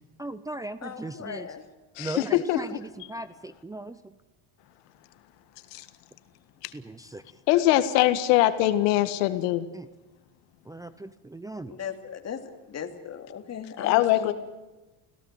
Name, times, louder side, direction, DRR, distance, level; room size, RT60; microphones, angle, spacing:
voice 1, 0.2-1.5 2.0-4.1 6.7-7.2 9.7-9.9 10.7-11.8, right 2 dB, 10° right, 10 dB, 0.7 m, -38 dB
voice 2, 0.8-1.6 11.6-14.3, left 7 dB, 35° left, 6 dB, 2.8 m, -37 dB
voice 3, 1.9-2.8 5.7-5.8 6.6-6.7 7.5-9.7 13.8-14.3, left 15 dB, 85° left, 11 dB, 1.9 m, -23 dB
26.0 x 17.0 x 8.2 m, 1.1 s
cardioid pair, 120°, 46 cm